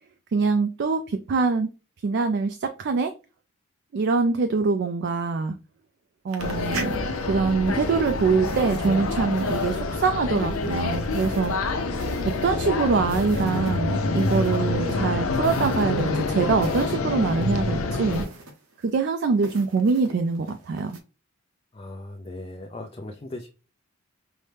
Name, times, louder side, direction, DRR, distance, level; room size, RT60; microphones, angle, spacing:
voice 1, 0.3-1.7 2.0-3.1 3.9-5.5 6.2-11.5 12.3-18.3 18.8-21.0, right 4 dB, 50° right, 8 dB, 0.3 m, -24 dB
sound 1, 6.3-17.0 17.2-21.0, right 2 dB, 90° right, 0.8 m, -42 dB
sound 2, 6.4-18.3, left 3 dB, 80° left, 0.6 m, -27 dB
voice 2, 21.7-23.5, left 2 dB, 25° left, 2 dB, 0.4 m, -38 dB
5.4 x 2.1 x 3.3 m, 0.33 s
head